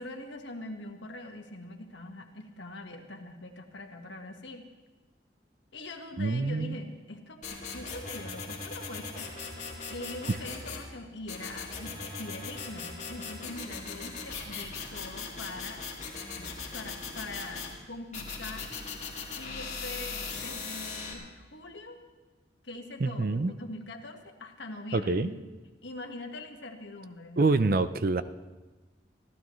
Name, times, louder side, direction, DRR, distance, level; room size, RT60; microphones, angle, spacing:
voice 1, 0.0-4.7 5.7-7.4 7.7-9.4 9.9-15.9 16.3-18.7 19.4-22.0 22.6-25.3 25.8-27.5, left 2 dB, 75° left, 4 dB, 1.6 m, -43 dB
voice 2, 6.2-6.8 23.0-23.5 24.9-25.3 27.4-28.2, right 3 dB, 50° right, 12 dB, 0.5 m, -26 dB
sound 1, 7.4-10.9 11.3-17.7 18.1-21.1, left 4 dB, 40° left, 2.5 m, -39 dB
25.0 x 15.0 x 3.2 m, 1.2 s
head